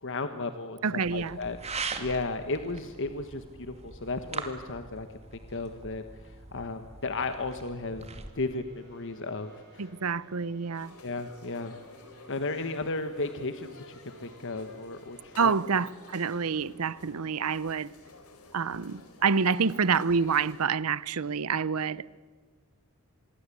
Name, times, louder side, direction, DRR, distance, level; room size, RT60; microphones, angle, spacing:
voice 1, 0.0-5.1 5.3-6.0 6.5-8.1 8.3-9.9 11.0-11.7 12.3-15.5, left 3 dB, 60° left, 1.4 m, -34 dB
voice 2, 0.8-1.4 9.8-10.9 15.4-17.9 18.5-22.1, right 5 dB, 70° right, 0.7 m, -27 dB
sound 1, 1.0-8.3, right 4 dB, 30° right, 2.4 m, -41 dB
sound 2, 8.1-15.5, right 1 dB, 50° right, 6.6 m, -56 dB
sound 3, 10.7-20.6, left 3 dB, 90° left, 3.8 m, -52 dB
26.5 x 22.0 x 8.5 m
head